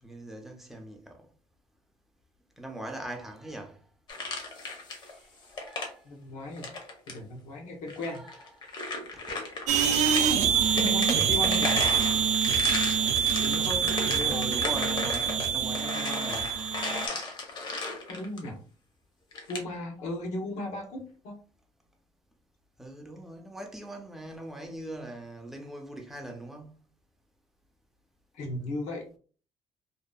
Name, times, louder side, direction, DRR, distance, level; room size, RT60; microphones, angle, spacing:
voice 1, 0.0-1.3 2.6-3.8 4.2-4.3 5.0-6.0 8.1-8.7 10.4-10.8 14.2-16.5 22.8-26.8, right 1 dB, 5° right, 0.4 m, -41 dB
sound 1, 4.1-5.1 5.4-5.9 6.6-7.2 7.9-10.3 10.7-18.5 19.3-19.6, left 3 dB, 40° left, 0.6 m, -35 dB
voice 2, 6.0-6.7 7.1-8.2 10.7-11.8 13.4-14.5 18.1-18.6 19.5-21.4 28.3-29.1, left 1 dB, 85° left, 0.8 m, -36 dB
sound 2, 9.7-17.1, right 7 dB, 80° right, 0.4 m, -25 dB
2.6 x 2.3 x 2.2 m
cardioid pair, 170°, 12 cm